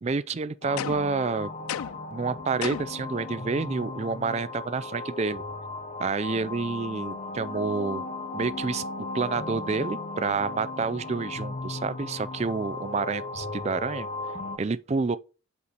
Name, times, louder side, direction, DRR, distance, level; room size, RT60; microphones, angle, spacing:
voice 1, 0.0-1.5 2.1-5.4 6.0-8.1 8.3-8.8 9.1-14.1 14.6-15.2, right 4 dB, 30° right, 0.3 m, -29 dB
sound 1, 0.6-14.6, left 3 dB, 30° left, 0.7 m, -36 dB
sound 2, 0.8-1.2 1.7-2.1 2.6-3.0, left 9 dB, 85° left, 0.3 m, -33 dB
8.2 x 5.0 x 2.9 m
head